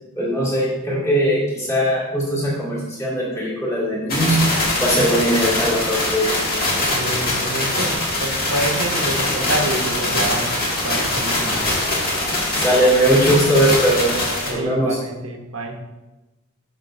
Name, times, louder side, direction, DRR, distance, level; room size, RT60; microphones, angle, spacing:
voice 1, 0.2-4.4 4.8-6.4 12.6-14.2 14.5-15.0, equal, 15° left, -8 dB, 2.6 m, -19 dB
sound 1, 4.1-14.5, left 1 dB, 45° left, 2.1 m, -22 dB
voice 2, 6.8-11.7 14.5-15.8, right 2 dB, 80° right, 3 dB, 1.1 m, -28 dB
10.5 x 6.5 x 2.7 m, 1.1 s
head